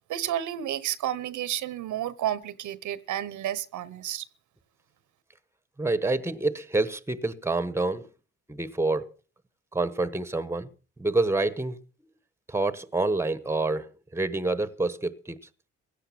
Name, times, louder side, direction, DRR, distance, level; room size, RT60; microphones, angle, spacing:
voice 1, 0.0-4.3, right 11 dB, 75° right, 1.1 m, -31 dB
voice 2, 5.8-8.0 8.5-9.1 9.7-10.7 11.0-11.8 12.5-15.4, right 2 dB, 10° right, 1.2 m, -27 dB
16.5 x 10.0 x 5.9 m
cardioid pair, 90°, 30 cm